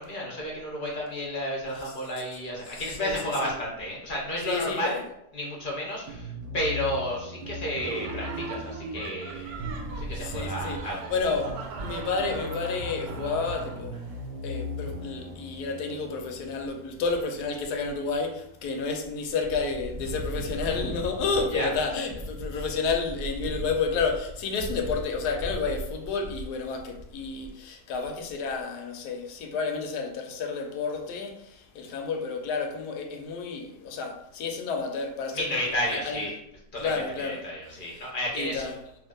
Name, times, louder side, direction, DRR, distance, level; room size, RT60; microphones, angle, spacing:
voice 1, 0.0-5.0 5.3-9.6 10.0-11.1 21.5-21.7 35.3-36.3 36.7-38.6, equal, 40° left, 0.8 m, -32 dB
voice 2, 2.7-3.5 4.5-5.0 10.2-10.8 11.1-11.5 11.8-14.0 14.4-36.2 36.8-37.4 37.7-38.1 38.3-38.7, left 4 dB, 85° left, 1.2 m, -31 dB
sound 1, 6.1-18.9, equal, 50° right, 0.9 m, -40 dB
Laughter, 7.8-14.1, right 4 dB, 75° right, 1.0 m, -40 dB
Wind, 9.4-12.4 12.9-13.0 13.2-13.6 15.1-15.7 16.2-16.7 17.0-18.2 18.6-19.1 19.4-27.6, equal, 30° right, 0.6 m, -39 dB
3.1 x 2.7 x 3.6 m
omnidirectional pair, 1.7 m